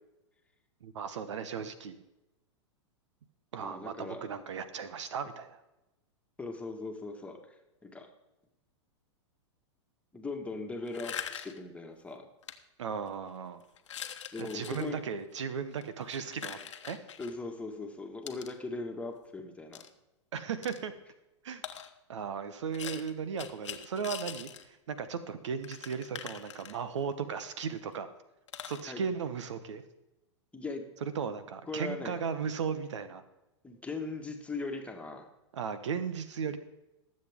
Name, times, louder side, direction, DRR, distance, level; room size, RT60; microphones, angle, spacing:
voice 1, 0.8-2.0 3.5-5.6 12.8-13.6 14.4-17.0 20.3-20.9 21.4-21.6 22.1-28.1 28.6-29.8 31.0-33.2 35.5-36.6, right 6 dB, 75° right, 12 dB, 1.1 m, -36 dB
voice 2, 3.6-4.2 6.4-7.4 7.8-8.1 10.1-12.2 14.3-15.0 17.2-19.8 28.8-29.0 30.5-30.8 31.7-32.2 33.6-35.3, left 3 dB, 10° left, 3 dB, 1.7 m, -39 dB
sound 1, 10.9-11.7 12.4-12.5 13.1-13.3 13.8-14.9 15.7-17.3 18.3-18.5 19.7-19.9 20.6-20.8 21.6-21.9 22.7-24.6 25.0-25.1 25.3-25.4 25.6-27.1 27.6-27.7 27.9-28.0 28.5-28.8, left 9 dB, 80° left, 1.1 m, -43 dB
19.5 x 7.7 x 3.6 m, 0.96 s
hypercardioid pair, 110°, 15 cm